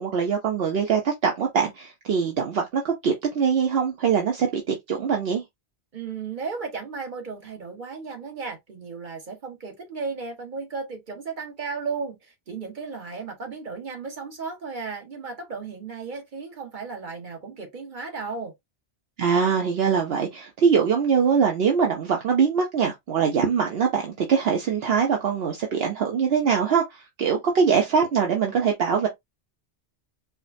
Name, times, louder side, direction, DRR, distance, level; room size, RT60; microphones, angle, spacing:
voice 1, 0.0-5.4 19.2-29.1, right 6 dB, 70° right, 0.9 m, -23 dB
voice 2, 5.9-18.5, right 4 dB, 50° right, 1.3 m, -35 dB
4.8 x 2.2 x 2.5 m
omnidirectional pair, 1.1 m